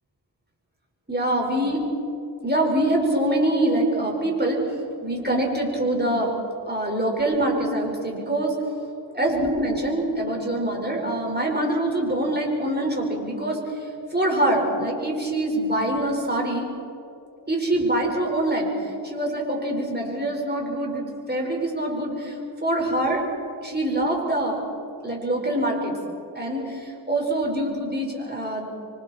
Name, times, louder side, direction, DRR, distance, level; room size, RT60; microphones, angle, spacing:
voice 1, 1.1-1.8 2.4-4.8 5.0-6.4 6.7-8.7 9.1-16.7 17.5-23.2 23.6-24.6 25.0-25.9 26.3-28.7, right 1 dB, 25° right, -1 dB, 5.1 m, -24 dB
26.5 x 24.5 x 4.4 m, 2.7 s
wide cardioid pair, 45°, 43 cm